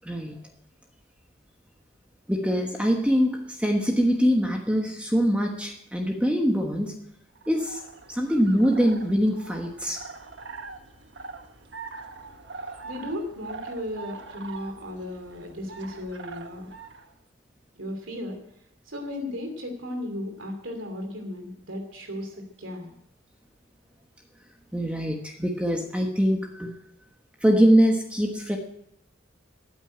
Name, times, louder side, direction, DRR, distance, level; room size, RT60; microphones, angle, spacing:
voice 1, 0.0-0.4 2.3-6.9 7.5-7.8 8.1-10.1 24.7-26.8 27.4-28.6, equal, 5° right, 1 dB, 1.2 m, -23 dB
sound 1, 7.4-17.1, right 4 dB, 65° right, 1.3 m, -43 dB
voice 2, 12.8-16.7 17.8-18.4 18.8-22.9, left 1 dB, 85° right, 4 dB, 2.8 m, -35 dB
14.0 x 9.0 x 8.7 m, 0.77 s
head